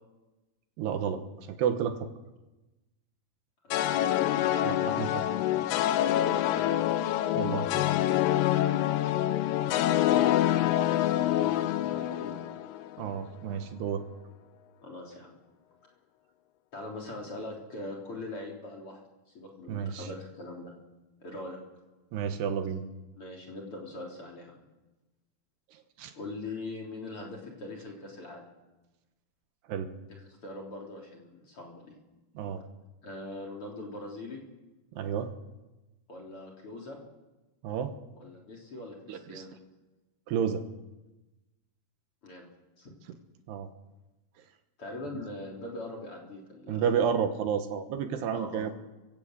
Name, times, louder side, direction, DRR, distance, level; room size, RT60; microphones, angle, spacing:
voice 1, 0.8-2.1 4.6-5.3 7.3-7.7 13.0-14.1 19.7-20.1 22.1-22.8 25.7-26.1 29.7-29.9 32.4-32.7 34.9-35.3 37.6-37.9 39.1-39.4 40.3-40.6 43.5-43.7 46.7-48.7, right 7 dB, 75° right, 7 dB, 3.3 m, -31 dB
voice 2, 3.6-4.3 6.5-6.9 10.6-12.5 14.8-15.4 16.7-19.0 19.3-20.7 21.2-21.6 23.1-24.6 26.1-28.5 30.1-31.9 33.0-34.4 36.1-37.0 38.1-39.6 42.2-42.5 42.8-42.9 44.8-47.1 48.3-48.7, left 2 dB, 35° left, -1 dB, 4.0 m, -42 dB
sound 1, 3.7-13.0, left 12 dB, 75° left, 2.7 m, -26 dB
24.5 x 16.5 x 8.1 m, 1.1 s
omnidirectional pair, 4.9 m